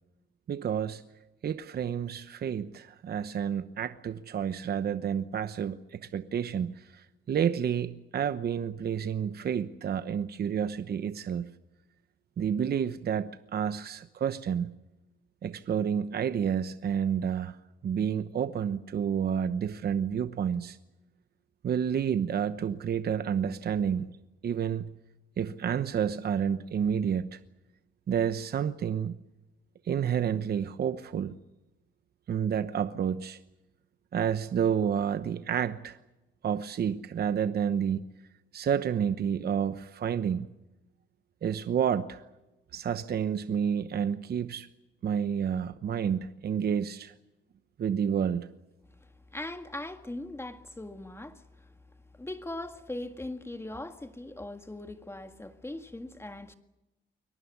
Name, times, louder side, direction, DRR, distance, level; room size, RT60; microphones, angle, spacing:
voice 1, 0.5-1.0 1.4-11.5 12.4-14.7 15.4-17.6 17.8-20.8 21.6-24.1 24.4-24.9 25.4-27.4 28.1-29.2 29.8-31.3 32.3-33.4 34.1-36.0 36.4-38.1 38.5-40.5 41.4-42.2 42.7-44.7 45.0-47.1 47.8-48.5, right 8 dB, 50° right, 1.0 m, -30 dB
voice 2, 49.3-51.7 52.1-56.5, left 1 dB, 10° left, 1.9 m, -40 dB
22.5 x 19.0 x 9.6 m
cardioid pair, 90°, 20 cm